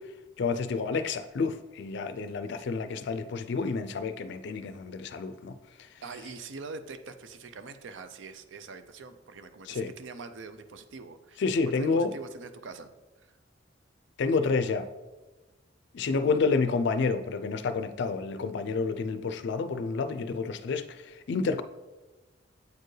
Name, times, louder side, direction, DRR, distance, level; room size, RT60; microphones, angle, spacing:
voice 1, 0.4-5.6 9.7-9.9 11.4-12.1 14.2-14.9 15.9-21.6, left 4 dB, 65° left, 0.4 m, -29 dB
voice 2, 6.0-11.4 11.8-12.9 13.2-13.3, right 4 dB, 75° right, 0.5 m, -43 dB
8.2 x 4.5 x 3.2 m
head